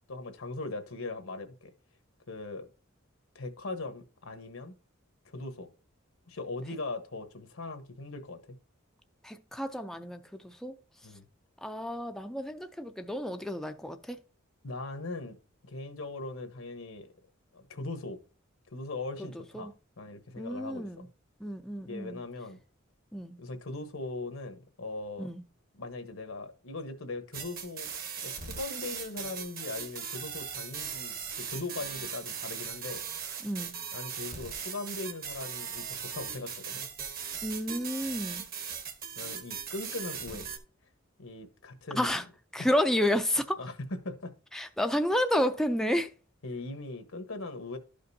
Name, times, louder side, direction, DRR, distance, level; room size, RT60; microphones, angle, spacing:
voice 1, 0.1-1.7 2.3-2.7 3.3-4.7 5.2-5.7 6.3-8.6 11.0-11.2 14.6-15.4 15.6-17.1 17.5-18.2 18.7-21.1 21.8-22.6 23.4-25.3 25.7-27.9 28.2-33.0 33.9-36.9 39.2-40.5 41.2-42.2 43.6-44.3 46.4-47.8, left 2 dB, 85° left, 1.2 m, -40 dB
voice 2, 9.2-10.8 11.6-14.2 19.2-19.7 20.4-21.1 21.4-22.2 23.1-23.4 25.2-25.4 33.4-33.7 37.4-38.4 41.9-42.2 42.5-43.7 44.5-46.1, left 1 dB, ahead, 0.4 m, -31 dB
sound 1, 27.3-40.6, right 7 dB, 45° right, 1.1 m, -39 dB
12.5 x 5.1 x 2.7 m
head